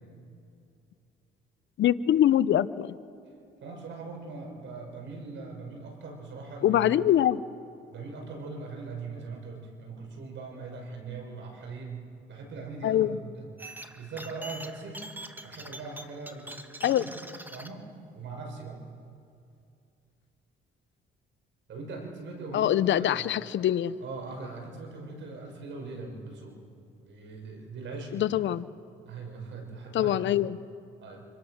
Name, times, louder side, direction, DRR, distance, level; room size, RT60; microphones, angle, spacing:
voice 1, 1.8-3.0 6.6-7.4 12.8-13.2 16.8-17.0 22.5-23.9 28.1-28.7 29.9-30.6, left 11 dB, 70° left, 16 dB, 0.8 m, -24 dB
voice 2, 3.6-6.9 7.9-13.5 14.0-15.1 15.4-16.5 16.8-17.2 17.5-17.9 18.1-18.8 21.7-23.3 24.0-26.6 27.0-28.3 29.0-30.3 31.0-31.3, right 3 dB, 70° right, 2 dB, 6.1 m, -41 dB
sound 1, 13.6-17.7, right 1 dB, 10° right, 1.6 m, -44 dB
29.5 x 26.0 x 6.5 m, 2.6 s
cardioid pair, 90°, 20 cm